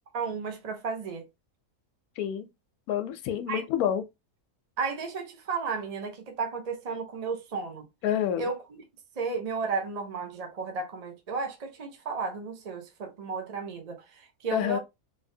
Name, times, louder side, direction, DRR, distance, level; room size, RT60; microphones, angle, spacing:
voice 1, 0.1-1.2 3.5-3.6 4.8-7.8 8.4-8.8 9.2-14.8, right 4 dB, 35° right, 0.7 m, -33 dB
voice 2, 2.2-2.5 2.9-4.0 8.0-8.5 14.5-14.8, left 10 dB, 90° left, 1.1 m, -28 dB
3.3 x 2.6 x 2.7 m
omnidirectional pair, 1.5 m